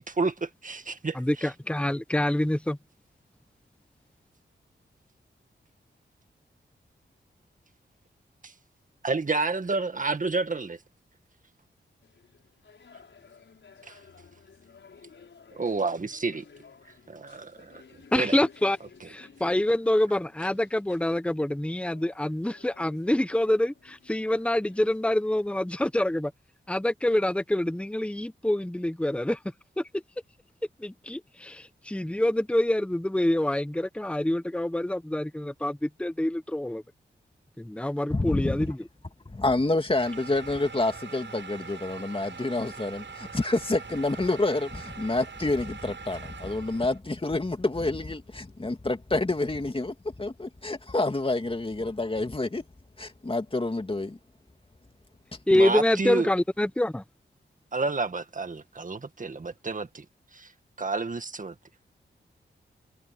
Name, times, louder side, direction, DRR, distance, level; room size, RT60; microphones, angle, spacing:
voice 1, 0.0-1.5 8.4-8.5 9.0-10.8 13.9-14.0 15.6-16.4 17.1-17.8 18.1-18.4 19.0-19.1 55.5-56.3 57.7-60.1 60.3-60.5 60.8-61.5, right 3 dB, 40° right, 1.9 m, -30 dB
voice 2, 1.1-2.8 18.1-18.8 19.1-26.3 26.7-29.4 29.8-30.0 30.8-36.8 37.6-38.8 55.5-57.0, left 1 dB, 5° left, 1.0 m, -26 dB
sound 1, 12.0-25.9, left 5 dB, 70° left, 6.2 m, -55 dB
voice 3, 38.1-38.7 39.3-52.6 53.0-54.2, left 2 dB, 25° left, 2.5 m, -28 dB
sound 2, 40.0-47.0, right 5 dB, 70° right, 7.4 m, -43 dB
cardioid pair, 55°, 20 cm